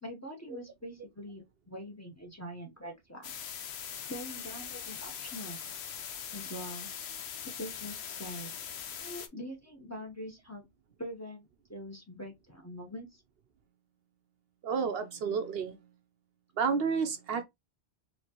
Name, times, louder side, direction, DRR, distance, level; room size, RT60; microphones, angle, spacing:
voice 1, 0.0-3.3 4.0-5.6 6.3-6.9 7.5-8.5 9.0-10.7 11.0-13.2, equal, 15° left, 0.8 m, -43 dB
sound 1, 3.2-9.3, left 8 dB, 75° left, 0.9 m, -41 dB
voice 2, 14.6-15.8 16.6-17.4, right 5 dB, 65° right, 0.7 m, -30 dB
4.2 x 2.9 x 2.9 m
omnidirectional pair, 1.1 m